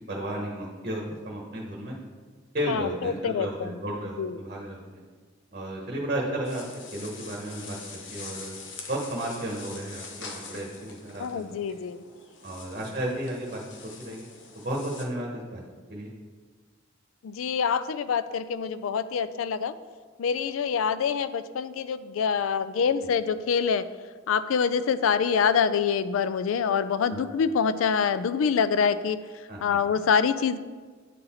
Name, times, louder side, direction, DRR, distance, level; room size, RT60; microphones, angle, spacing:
voice 1, 0.0-2.0 2.5-5.0 5.5-6.6 6.9-8.6 8.9-11.5 12.4-13.6 14.0-14.3 14.5-15.6 15.9-16.1 29.5-29.6, right 1 dB, 40° right, -1 dB, 1.0 m, -33 dB
voice 2, 2.7-3.8 4.2-4.4 11.2-12.0 17.2-19.7 20.2-23.9 24.3-30.6, left 6 dB, 85° left, 13 dB, 0.3 m, -26 dB
sound 1, 6.4-15.0, left 4 dB, 65° left, 0.9 m, -44 dB
9.1 x 3.9 x 4.2 m, 1.5 s
head